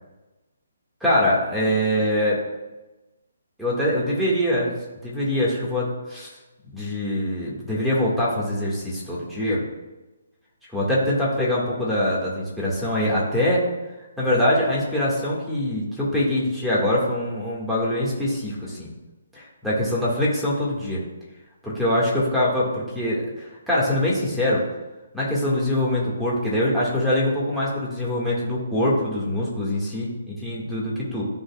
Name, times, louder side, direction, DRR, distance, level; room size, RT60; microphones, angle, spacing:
voice 1, 1.0-2.4 3.6-4.7 5.0-6.3 6.7-9.6 10.7-13.6 14.2-18.9 19.3-21.0 21.6-24.6 25.1-31.2, left 1 dB, ahead, -7 dB, 1.8 m, -23 dB
11.5 x 4.0 x 2.4 m, 1.1 s
hypercardioid pair, 145°, 0 cm